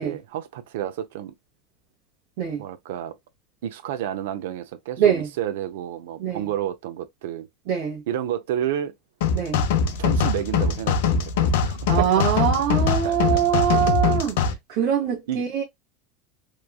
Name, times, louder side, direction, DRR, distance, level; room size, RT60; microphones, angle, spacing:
voice 1, 0.0-1.3 2.6-3.2 3.6-7.5 8.1-8.9 10.0-12.1 13.0-13.4 14.4-14.6 15.3-15.4, right 11 dB, 85° right, 0.5 m, -30 dB
voice 2, 5.0-5.3 6.2-6.4 7.7-8.0 9.3-9.6 11.9-15.6, right 9 dB, 65° right, 1.1 m, -23 dB
sound 1, 9.2-14.5, left 5 dB, 85° left, 0.6 m, -22 dB
3.0 x 2.3 x 2.3 m
supercardioid pair, 150°, 0 cm